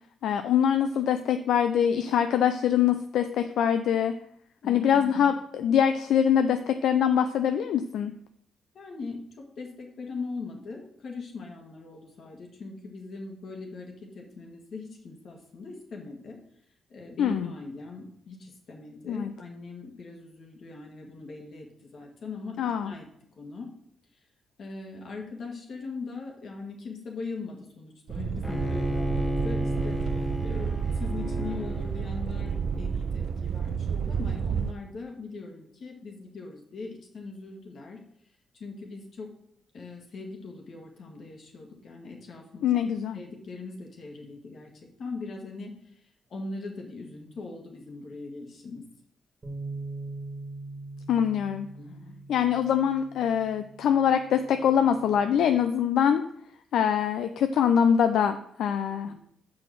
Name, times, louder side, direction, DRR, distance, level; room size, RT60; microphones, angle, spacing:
voice 1, 0.2-4.1 4.7-8.1 17.2-17.5 19.1-19.3 22.6-22.9 42.6-43.2 51.1-51.7 52.3-56.2 56.7-59.1, left 8 dB, 80° left, 8 dB, 0.4 m, -24 dB
voice 2, 4.6-5.3 8.7-16.4 16.9-23.1 23.4-23.7 24.6-38.0 38.5-39.3 39.7-42.6 43.1-44.7 45.0-48.9 51.8-52.2 59.1-59.2, left 3 dB, 65° left, 1 dB, 1.7 m, -40 dB
sound 1, 28.1-34.7, right 7 dB, 65° right, 0.4 m, -30 dB
Bowed string instrument, 28.4-33.5, left 1 dB, 15° left, 0.8 m, -33 dB
sound 2, 49.4-55.7, right 3 dB, 25° right, 2.0 m, -42 dB
6.0 x 4.8 x 6.1 m, 0.70 s
cardioid pair, 85°, 0 cm